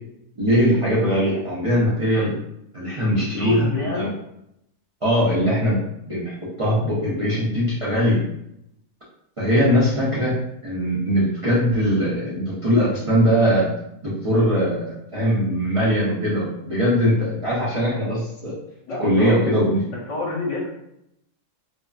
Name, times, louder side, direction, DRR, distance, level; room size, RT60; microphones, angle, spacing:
voice 1, 0.4-2.3 2.7-3.6 3.9-4.1 5.0-5.8 6.1-8.2 9.4-13.7 14.0-18.5 19.0-19.8, equal, 50° right, -8 dB, 0.4 m, -21 dB
voice 2, 3.4-4.1 18.9-19.4 19.8-20.7, left 3 dB, 60° left, -5 dB, 1.1 m, -26 dB
2.7 x 2.4 x 2.3 m, 0.80 s
omnidirectional pair, 1.5 m